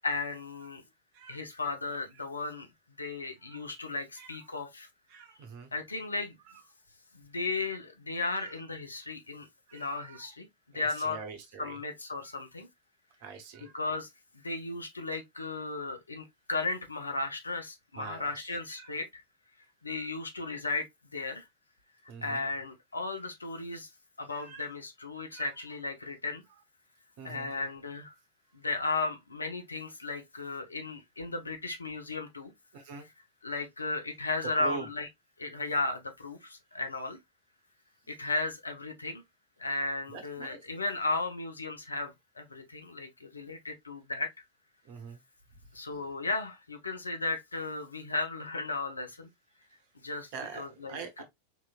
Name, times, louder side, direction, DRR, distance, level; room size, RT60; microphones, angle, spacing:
voice 1, 0.0-0.8 1.3-2.7 3.0-4.9 5.7-6.4 7.1-9.5 9.7-10.5 10.7-11.2 11.6-12.7 13.6-14.1 14.3-19.2 19.8-20.9 21.1-21.5 22.2-23.9 24.2-26.4 27.2-28.1 28.5-32.5 33.0-33.1 33.4-35.1 35.4-37.2 38.1-39.2 39.6-44.3 45.7-49.3 50.0-51.2, left 3 dB, 80° left, 0.7 m, -35 dB
voice 2, 5.1-5.7 8.3-8.5 9.7-10.2 10.7-11.8 12.2-12.3 13.2-13.7 18.0-18.4 18.7-18.9 19.9-20.1 22.1-22.4 24.3-24.7 25.3-25.5 27.2-27.5 32.7-33.1 34.6-34.8 40.1-40.6 44.9-45.2 50.3-50.6 50.9-51.2, right 5 dB, 50° right, 1.0 m, -44 dB
3.9 x 3.1 x 2.3 m
figure-of-eight pair, 90°, 0 cm